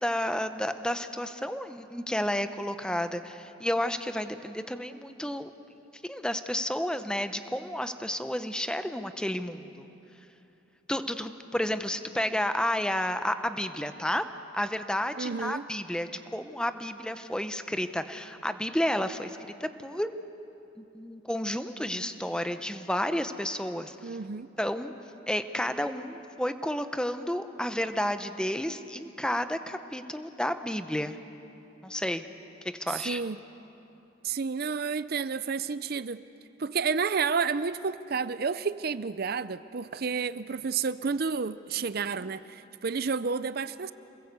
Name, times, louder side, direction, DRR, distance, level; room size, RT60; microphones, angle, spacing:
voice 1, 0.0-5.5 6.0-9.9 10.9-14.3 14.5-20.1 20.8-24.2 24.6-24.9 25.3-31.2 31.8-32.2 32.7-33.2, left 1 dB, 5° left, 0.8 m, -31 dB
voice 2, 15.2-15.6 24.0-24.5 32.9-33.4 34.2-36.2 36.6-43.9, right 5 dB, 50° right, 0.5 m, -30 dB
28.0 x 21.0 x 8.2 m
head